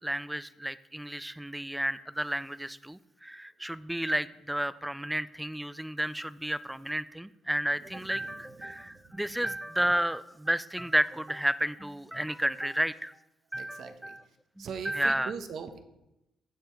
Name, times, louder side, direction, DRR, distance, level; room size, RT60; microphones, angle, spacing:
voice 1, 0.0-13.1 13.5-14.2 14.6-15.3, right 1 dB, 5° right, 16 dB, 0.4 m, -32 dB
voice 2, 7.8-9.3 13.6-14.2 14.6-15.8, right 6 dB, 65° right, 8 dB, 1.1 m, -42 dB
15.5 x 5.5 x 4.6 m, 0.90 s
cardioid pair, 90°, 0 cm